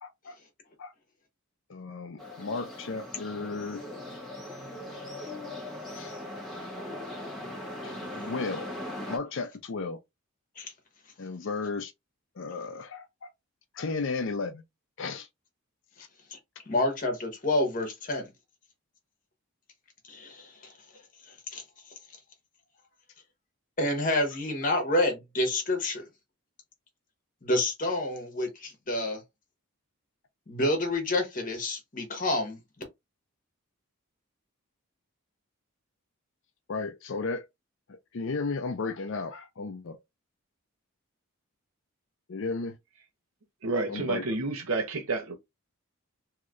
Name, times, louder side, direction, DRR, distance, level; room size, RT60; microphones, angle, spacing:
voice 1, 0.0-0.4 0.8-0.9 1.7-3.8 5.9-6.1 7.8-8.7 9.1-10.0 11.2-11.9 12.4-13.3 13.7-14.6 15.0-15.3 36.7-37.5 37.9-40.0 42.3-42.8 43.9-44.2, left 4 dB, 55° left, 0.5 m, -34 dB
sound 1, 2.2-9.2, left 1 dB, ahead, 1.0 m, -39 dB
voice 2, 16.7-18.3 20.1-20.7 21.5-21.6 23.8-26.0 27.4-29.2 30.5-32.6, left 1 dB, 35° left, 1.0 m, -28 dB
voice 3, 43.6-45.3, right 3 dB, 70° right, 0.8 m, -29 dB
3.1 x 2.8 x 2.5 m
head